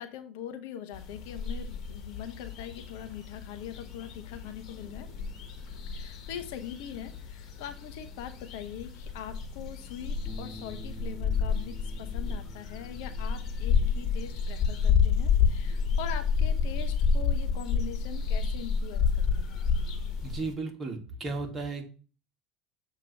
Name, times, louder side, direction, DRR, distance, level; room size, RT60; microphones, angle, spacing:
voice 1, 0.0-5.1 5.9-19.6, left 9 dB, 65° left, 8 dB, 0.8 m, -42 dB
sound 1, 0.9-20.5, left 6 dB, 45° left, 1.4 m, -30 dB
sound 2, 10.2-16.5, right 1 dB, 15° right, 3.4 m, -51 dB
voice 2, 20.2-21.9, right 3 dB, 30° right, 3 dB, 1.9 m, -35 dB
7.5 x 2.9 x 5.8 m, 0.37 s
figure-of-eight pair, 70°, 0 cm